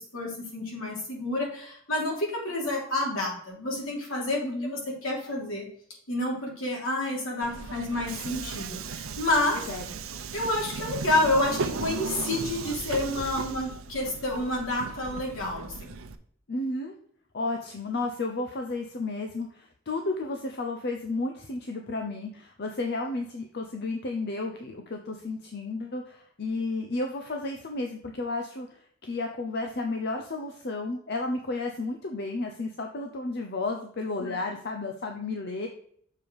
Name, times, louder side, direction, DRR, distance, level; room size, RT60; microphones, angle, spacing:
voice 1, 0.0-5.6 6.1-9.7 10.3-15.9 34.2-34.4, left 2 dB, 75° left, -2 dB, 3.1 m, -29 dB
voice 2, 4.4-4.8 9.7-9.8 16.5-17.0 17.3-35.7, left 2 dB, 50° left, 3 dB, 0.7 m, -32 dB
Subway metro underground, 7.4-16.2, right 4 dB, 85° right, 0.7 m, -36 dB
6.8 x 4.8 x 5.2 m, 0.63 s
head